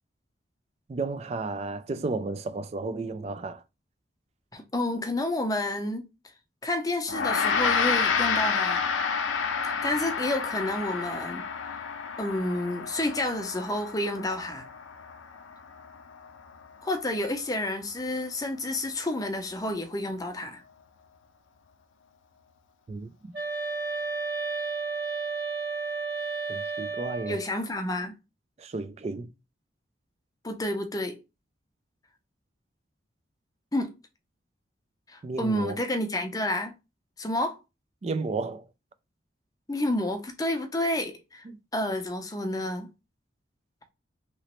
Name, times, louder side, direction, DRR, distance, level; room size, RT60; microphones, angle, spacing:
voice 1, 0.9-3.6 22.9-23.4 26.5-27.4 28.6-29.3 35.2-35.8 38.0-38.7, right 3 dB, 35° right, 0.3 m, -33 dB
voice 2, 4.5-6.0 6.6-8.8 9.8-11.5 12.2-14.7 16.8-20.6 27.3-28.1 30.4-31.1 33.7-33.9 35.1-36.7 37.2-37.6 39.7-41.4 41.7-42.9, left 1 dB, 20° left, 0.6 m, -30 dB
Gong, 7.1-16.6, left 5 dB, 85° left, 0.5 m, -29 dB
sound 1, 23.3-27.5, right 4 dB, 55° right, 1.2 m, -32 dB
3.0 x 3.0 x 3.0 m
head